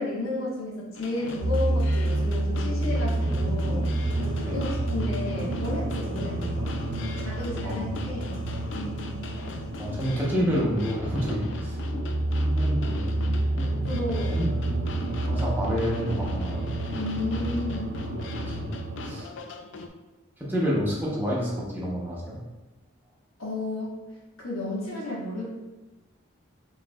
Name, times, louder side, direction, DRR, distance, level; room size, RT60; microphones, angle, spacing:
voice 1, 0.0-3.8 4.2-6.7 7.2-8.3 8.7-9.3 13.8-14.4 16.9-17.9 23.4-24.0 24.4-25.5, left 2 dB, 85° left, -4 dB, 1.4 m, -32 dB
sound 1, 0.9-19.9, left 3 dB, 60° left, 0.4 m, -40 dB
sound 2, 1.4-19.3, right 2 dB, 45° right, 0.3 m, -29 dB
voice 2, 7.6-7.9 9.8-11.8 12.5-14.1 14.3-16.7 18.1-18.7 19.0-19.3 20.4-22.4, equal, 10° right, -6 dB, 0.9 m, -29 dB
4.5 x 3.9 x 2.3 m, 1.1 s
head